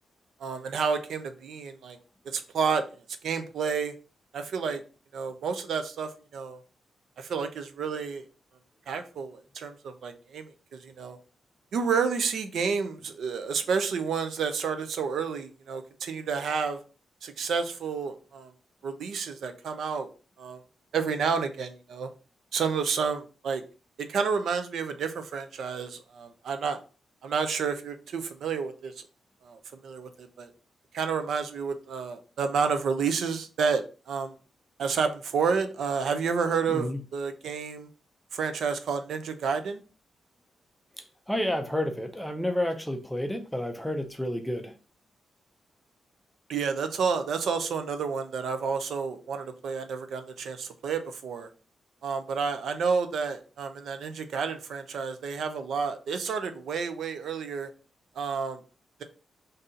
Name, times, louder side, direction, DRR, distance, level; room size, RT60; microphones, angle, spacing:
voice 1, 0.4-2.0 2.3-2.8 3.2-3.9 4.3-4.8 5.1-6.6 7.2-8.2 8.9-11.2 11.7-16.8 17.2-18.5 18.8-20.1 20.4-20.6 20.9-22.1 22.5-23.6 24.0-26.8 27.2-28.9 29.4-30.5 30.9-34.3 34.8-37.9 38.3-39.8 46.5-51.5 52.0-57.7 58.2-58.6, right 5 dB, 65° right, 0.5 m, -30 dB
voice 2, 36.7-37.0 41.0-44.8, left 1 dB, 5° left, 0.4 m, -30 dB
4.0 x 2.6 x 3.7 m
wide cardioid pair, 180°, 0 cm